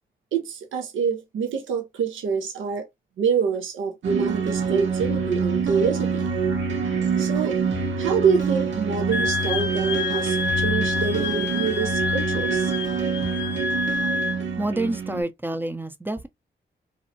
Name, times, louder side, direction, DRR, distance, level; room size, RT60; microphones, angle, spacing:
voice 1, 0.3-2.9 3.2-6.2 7.2-7.6 8.0-12.7, right 6 dB, 85° right, 0.6 m, -26 dB
sound 1, 4.0-15.2, right 5 dB, 70° right, 1.0 m, -26 dB
Wind instrument woodwind instrument, 9.1-14.4, left 4 dB, 65° left, 0.5 m, -28 dB
voice 2, 14.6-16.3, right 2 dB, 10° right, 0.5 m, -28 dB
2.6 x 2.0 x 2.7 m
cardioid pair, 50°, 20 cm